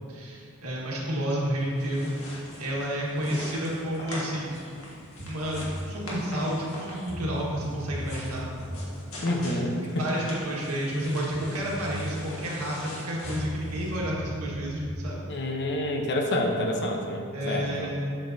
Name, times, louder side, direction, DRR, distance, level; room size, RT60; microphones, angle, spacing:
voice 1, 0.1-4.5 5.3-8.5 9.4-9.7 10.0-15.2 17.3-18.1, equal, 85° right, -4 dB, 1.5 m, -30 dB
sound 1, 1.6-14.0, left 1 dB, 70° left, 1.6 m, -42 dB
sound 2, 5.2-5.7 6.7-6.8 7.1-8.7 11.0-11.1 11.3-12.0 13.2-15.0, equal, 35° right, 1.3 m, -37 dB
voice 2, 9.2-10.0 15.3-17.9, left 1 dB, 50° left, 2 dB, 0.8 m, -28 dB
7.6 x 6.9 x 2.7 m, 2.4 s
head